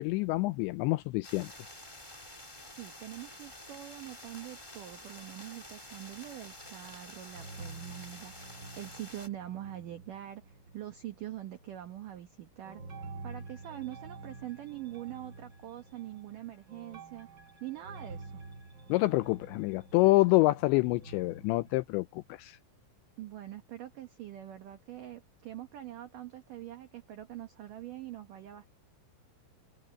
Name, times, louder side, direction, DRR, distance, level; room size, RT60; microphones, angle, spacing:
voice 1, 0.0-1.5 18.9-22.6, left 21 dB, 85° left, 2.6 m, -27 dB
sound 1, 1.2-9.3, left 1 dB, 10° left, 1.8 m, -49 dB
voice 2, 2.8-12.8 13.2-17.3 17.6-18.4 23.2-28.7, right 13 dB, 80° right, 1.9 m, -44 dB
sound 2, 6.0-7.1 7.3-11.1 11.5-12.0 12.6-21.8, right 3 dB, 25° right, 4.5 m, -49 dB
omnidirectional pair, 5.6 m